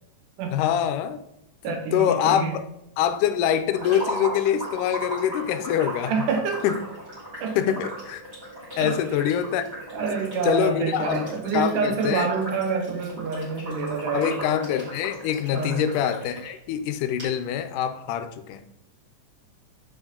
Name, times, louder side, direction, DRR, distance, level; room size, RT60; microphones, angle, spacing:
voice 1, 0.5-1.2 1.7-2.6 3.0-6.1 6.6-6.9 7.6-8.2 8.8-9.7 10.4-12.3 14.1-18.6, left 9 dB, 85° left, 2.1 m, -25 dB
voice 2, 1.6-2.5 6.1-6.6 7.4-7.8 8.8-8.9 9.9-14.4 15.5-15.9, right 4 dB, 85° right, 2.5 m, -27 dB
sound 1, 3.7-16.5 16.8-16.9 17.2-17.3, right 1 dB, 25° right, 3.2 m, -37 dB
7.1 x 6.2 x 3.7 m
omnidirectional pair, 3.7 m